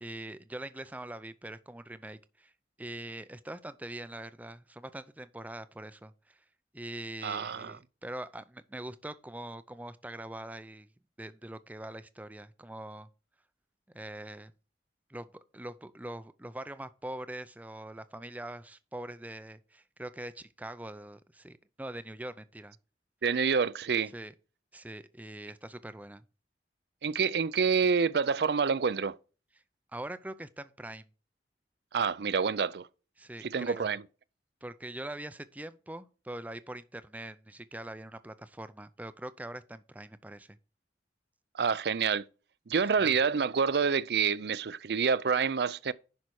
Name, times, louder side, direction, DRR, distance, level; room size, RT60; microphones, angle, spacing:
voice 1, 0.0-2.5 2.8-6.4 6.7-10.9 11.2-13.1 13.9-14.5 15.1-22.8 24.1-24.3 24.7-26.2 29.9-31.1 33.2-33.9 34.6-40.6 43.0-43.2, right 1 dB, 10° right, 0.5 m, -43 dB
voice 2, 7.2-7.8 23.2-24.1 27.0-29.1 31.9-32.9 33.4-34.0 41.6-42.2 42.7-45.9, right 5 dB, 65° right, 0.5 m, -27 dB
10.5 x 5.6 x 4.7 m
head